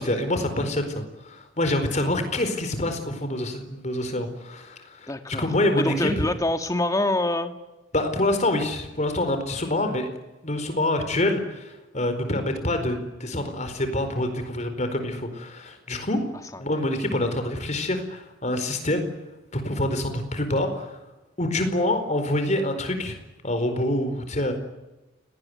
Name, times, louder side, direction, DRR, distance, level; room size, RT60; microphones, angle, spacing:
voice 1, 0.0-6.2 7.9-10.1 10.4-16.2 16.6-19.1 19.5-21.0 21.4-23.2 23.4-24.6, left 1 dB, 40° left, 8 dB, 4.6 m, -26 dB
voice 2, 5.1-5.5 5.8-7.5 16.5-16.6, left 1 dB, 20° left, 7 dB, 1.8 m, -25 dB
29.0 x 19.0 x 9.6 m, 1.1 s
head